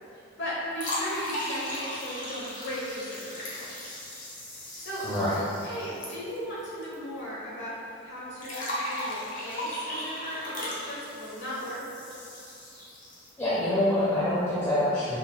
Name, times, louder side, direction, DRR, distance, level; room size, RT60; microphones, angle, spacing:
voice 1, 0.1-3.9 4.8-5.0 5.6-7.7 8.0-11.8, equal, 60° left, -7 dB, 1.4 m, -37 dB
sound 1, 0.7-6.9 7.2-7.3 8.4-13.4, left 1 dB, 40° left, 0.9 m, -37 dB
voice 2, 5.0-5.4 13.4-15.2, left 1 dB, 15° left, -10 dB, 0.6 m, -25 dB
5.7 x 3.9 x 2.3 m, 2.6 s
head